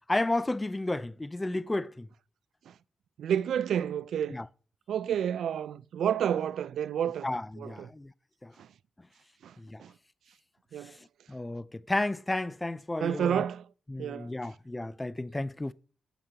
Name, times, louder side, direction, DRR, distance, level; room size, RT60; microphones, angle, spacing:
voice 1, 0.1-2.1 4.3-4.4 7.2-8.1 8.4-8.5 9.6-9.8 11.3-13.4 13.9-15.7, left 2 dB, 10° left, 0.3 m, -32 dB
voice 2, 3.2-4.4 4.9-7.3 7.6-7.9 8.6-8.7 9.4-9.5 9.8-9.9 10.7-11.0 13.0-13.7 14.0-14.3, right 9 dB, 70° right, 0.3 m, -30 dB
8.9 x 6.6 x 2.8 m
wide cardioid pair, 155°, 0 cm